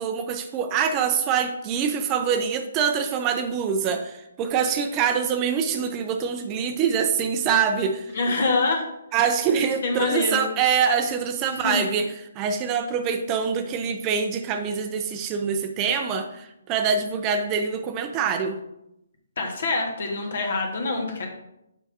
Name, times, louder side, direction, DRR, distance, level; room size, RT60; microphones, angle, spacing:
voice 1, 0.0-8.2 9.1-18.6, right 6 dB, 25° right, 7 dB, 0.5 m, -25 dB
voice 2, 8.1-8.9 9.8-10.5 11.5-11.9 19.4-21.3, left 3 dB, 60° left, 2 dB, 1.6 m, -25 dB
7.0 x 5.7 x 2.7 m, 0.87 s
hypercardioid pair, 145°, 0 cm